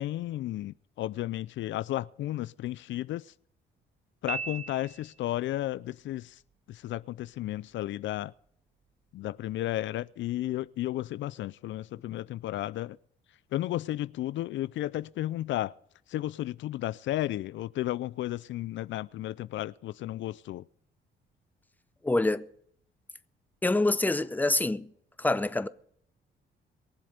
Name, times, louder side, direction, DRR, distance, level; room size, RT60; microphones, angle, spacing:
voice 1, 0.0-3.3 4.2-6.4 6.7-8.3 9.1-13.0 13.5-15.7 16.1-20.6, left 14 dB, 70° left, 0.4 m, -33 dB
Piano, 4.3-5.4, right 5 dB, 35° right, 0.8 m, -37 dB
voice 2, 22.0-22.5 23.6-24.9 25.2-25.7, left 2 dB, 10° left, 0.7 m, -26 dB
22.5 x 7.7 x 5.1 m
cardioid pair, 90°, 20 cm